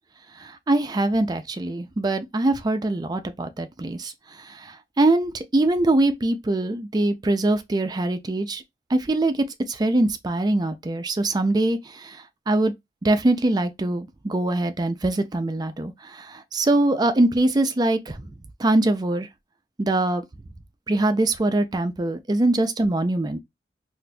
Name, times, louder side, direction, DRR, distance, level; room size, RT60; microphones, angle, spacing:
voice 1, 0.4-4.1 4.4-8.6 8.9-12.7 13.0-18.3 18.6-19.3 19.8-20.2 20.9-23.4, right 2 dB, 25° right, 0.4 m, -23 dB
4.0 x 2.5 x 2.3 m
head